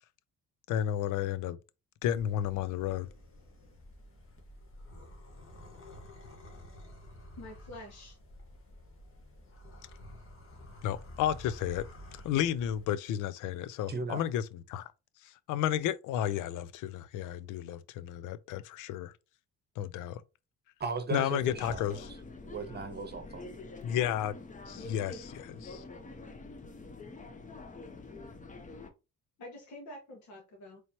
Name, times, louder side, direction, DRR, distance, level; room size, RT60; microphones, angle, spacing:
voice 1, 0.7-1.6 2.0-3.1 10.8-11.9 12.2-14.8 15.5-19.1 19.8-20.2 21.1-22.1 23.8-24.3 24.7-25.2 25.6-25.8, left 11 dB, 90° left, 0.5 m, -32 dB
sound 1, 2.0-12.9, left 1 dB, 45° left, 1.5 m, -51 dB
voice 2, 7.4-8.2 24.8-25.2 29.4-30.8, left 1 dB, 65° left, 1.5 m, -47 dB
voice 3, 13.9-14.2 20.8-22.1 22.4-23.5, right 4 dB, 35° right, 0.9 m, -37 dB
sound 2, 21.4-28.9, left 3 dB, 25° left, 0.8 m, -47 dB
4.3 x 3.1 x 2.9 m
cardioid pair, 90°, 30 cm